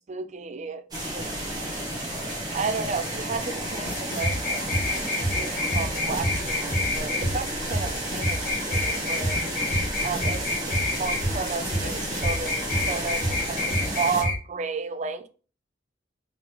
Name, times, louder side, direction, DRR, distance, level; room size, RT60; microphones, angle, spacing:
voice 1, 0.1-1.3 2.5-8.4 8.7-9.4 10.0-15.3, right 5 dB, 35° right, 0.4 m, -33 dB
sound 1, 0.9-14.2, right 1 dB, 20° right, 1.2 m, -31 dB
sound 2, 3.8-14.4, left 1 dB, 50° left, 1.3 m, -28 dB
3.9 x 3.4 x 3.0 m
head